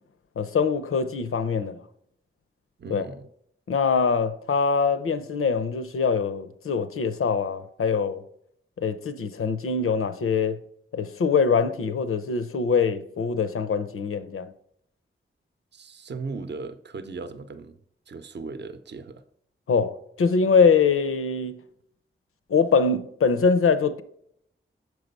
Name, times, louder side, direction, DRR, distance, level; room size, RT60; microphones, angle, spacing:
voice 1, 0.4-1.8 2.9-3.0 3.7-8.2 8.8-10.6 10.9-14.5 19.7-21.6 22.5-24.0, left 5 dB, 85° left, 0.6 m, -23 dB
voice 2, 2.8-3.3 15.7-19.2, right 4 dB, 55° right, 0.6 m, -37 dB
6.8 x 4.7 x 5.2 m
wide cardioid pair, 110°, 21 cm